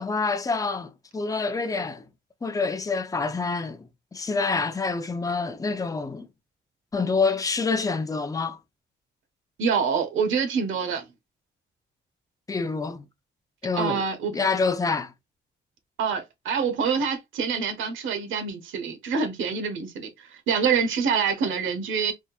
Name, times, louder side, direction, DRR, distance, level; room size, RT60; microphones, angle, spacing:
voice 1, 0.0-2.0 2.4-6.3 6.9-8.6 12.5-13.0 13.6-14.0 14.3-15.1, left 4 dB, 15° left, 0.6 m, -27 dB
voice 2, 9.6-11.1 13.7-14.5 16.0-22.1, right 6 dB, 80° right, 1.1 m, -26 dB
4.2 x 3.6 x 2.4 m
cardioid pair, 90°, 20 cm